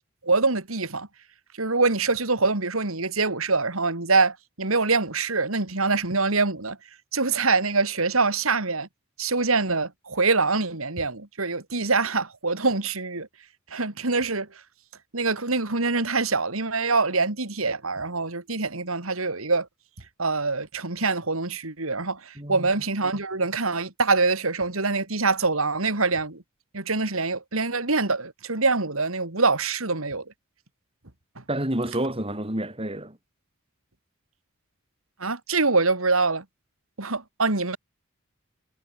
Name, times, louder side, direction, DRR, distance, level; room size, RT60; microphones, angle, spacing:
voice 1, 0.2-1.1 1.6-6.8 7.1-8.9 9.2-13.3 13.7-14.5 15.1-19.7 20.2-26.4 26.7-30.2 31.4-31.5 35.2-36.4 37.0-37.8, right 3 dB, 85° right, 3.2 m, -24 dB
voice 2, 22.4-22.7 31.5-33.2, right 1 dB, 25° right, 4.2 m, -29 dB
head